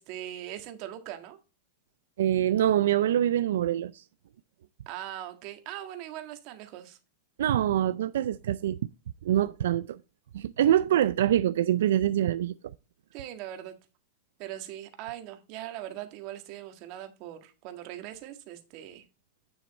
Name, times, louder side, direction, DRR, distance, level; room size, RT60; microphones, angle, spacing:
voice 1, 0.0-1.4 4.8-7.0 13.1-13.7 14.4-19.0, right 12 dB, 45° right, 1.8 m, -40 dB
voice 2, 2.2-4.0 7.4-8.8 9.2-10.0 10.3-12.6, right 11 dB, 80° right, 0.4 m, -25 dB
10.0 x 6.3 x 4.2 m
supercardioid pair, 145°, 0 cm